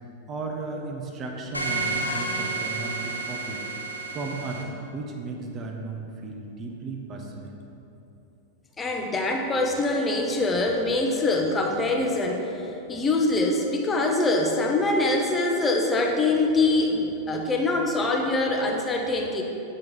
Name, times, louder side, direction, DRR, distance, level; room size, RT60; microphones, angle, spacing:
voice 1, 0.3-3.6 4.1-7.6, right 3 dB, 30° right, 2 dB, 0.7 m, -35 dB
sound 1, 1.5-4.6, right 3 dB, 90° right, 0.6 m, -30 dB
voice 2, 8.8-12.5 12.9-19.4, left 2 dB, 15° left, 2 dB, 0.7 m, -24 dB
7.7 x 4.4 x 3.6 m, 2.8 s
figure-of-eight pair, 90°, 0 cm